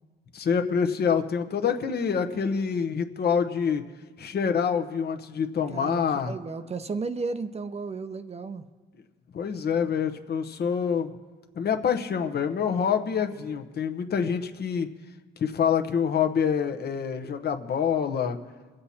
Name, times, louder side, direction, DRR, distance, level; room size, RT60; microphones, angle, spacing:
voice 1, 0.3-3.8 4.2-6.3 9.3-11.1 11.5-14.9 15.4-18.4, left 7 dB, 55° left, 6 dB, 1.0 m, -26 dB
voice 2, 5.7-8.7, right 4 dB, 30° right, 10 dB, 0.7 m, -34 dB
22.5 x 7.8 x 4.3 m, 1.3 s
cardioid pair, 90°, 20 cm